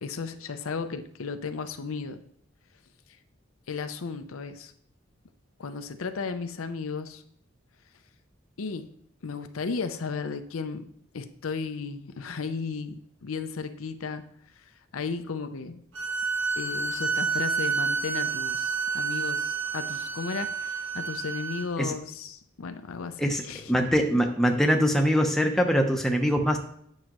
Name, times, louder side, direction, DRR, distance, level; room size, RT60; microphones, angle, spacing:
voice 1, 0.0-2.2 3.7-4.7 5.6-7.2 8.6-8.9 9.2-14.3 14.6-14.7 14.9-15.8 16.6-23.7, left 5 dB, 90° left, 9 dB, 0.6 m, -34 dB
sound 1, 15.9-21.6, right 5 dB, 65° right, 1.4 m, -29 dB
voice 2, 23.7-26.6, equal, ahead, 2 dB, 0.7 m, -23 dB
9.1 x 6.3 x 3.0 m, 0.68 s
head